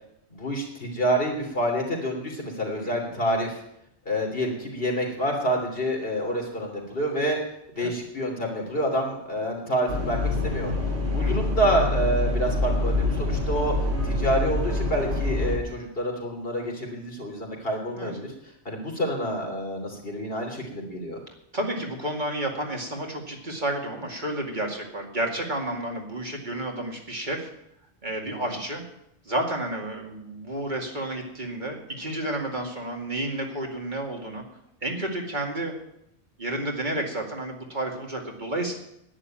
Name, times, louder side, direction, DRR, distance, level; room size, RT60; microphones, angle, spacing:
voice 1, 0.3-3.6 4.1-7.4 7.8-10.7 11.1-13.7 14.0-18.3 18.7-21.2 28.2-28.5, equal, 60° left, 1 dB, 3.5 m, -28 dB
sound 1, 9.9-15.6, left 2 dB, 80° right, 3.2 m, -26 dB
voice 2, 11.0-11.4 18.0-18.1 21.5-27.5 28.0-28.8 29.3-34.4 34.8-35.7 36.4-38.8, right 1 dB, 45° right, 1 dB, 2.4 m, -31 dB
11.0 x 9.8 x 8.8 m, 0.79 s
omnidirectional pair, 1.1 m